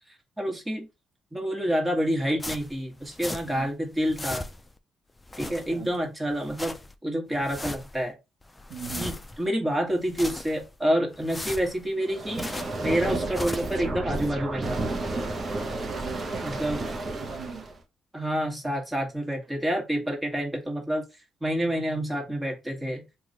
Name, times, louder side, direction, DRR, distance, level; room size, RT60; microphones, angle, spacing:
voice 1, 0.4-0.9 1.3-4.5 5.4-6.7 7.0-8.1 9.0-12.5 12.8-14.8 16.4-16.8 18.1-21.0 21.4-23.0, equal, 15° right, 1.4 m, -28 dB
sound 1, 2.4-3.7 3.9-4.8 5.2-6.0 6.3-6.9 7.3-8.0 8.4-9.5 9.9-10.8 11.1-12.9 13.2-13.8, left 2 dB, 15° left, 0.4 m, -38 dB
voice 2, 5.4-5.9 8.7-9.1 15.4-17.7, right 6 dB, 75° right, 0.7 m, -41 dB
sound 2, 12.0-17.8, right 2 dB, 40° right, 0.8 m, -31 dB
3.0 x 2.4 x 3.8 m
cardioid pair, 90°, 0 cm